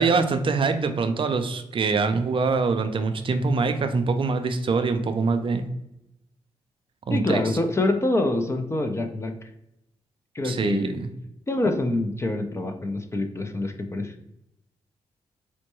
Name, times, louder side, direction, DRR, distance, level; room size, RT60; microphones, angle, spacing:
voice 1, 0.0-5.7 7.1-7.4 10.4-11.1, right 4 dB, 45° right, 8 dB, 0.5 m, -24 dB
voice 2, 7.1-9.3 10.3-11.0 11.5-14.1, left 2 dB, 25° left, 6 dB, 0.5 m, -26 dB
4.3 x 2.1 x 3.0 m, 0.83 s
supercardioid pair, 55°, 12 cm